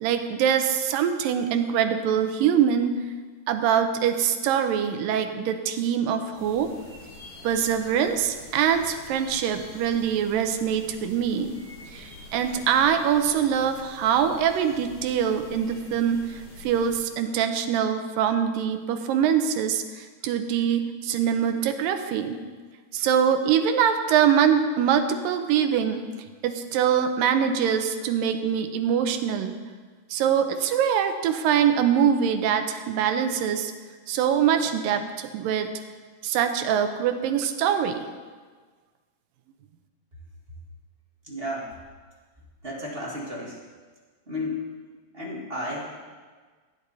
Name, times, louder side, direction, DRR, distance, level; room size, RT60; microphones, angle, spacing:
voice 1, 0.0-3.0 3.5-6.7 7.4-11.6 11.9-22.4 22.9-26.1 26.4-29.6 30.1-33.7 34.1-35.7 36.2-38.1, right 8 dB, 80° right, 7 dB, 2.5 m, -24 dB
sound 1, 6.3-17.0, left 2 dB, 55° left, 4.6 m, -47 dB
voice 2, 41.2-41.8 42.6-43.6 44.3-44.7 45.1-46.0, left 1 dB, 30° right, -4 dB, 1.0 m, -33 dB
15.5 x 10.0 x 4.1 m, 1.5 s
omnidirectional pair, 4.0 m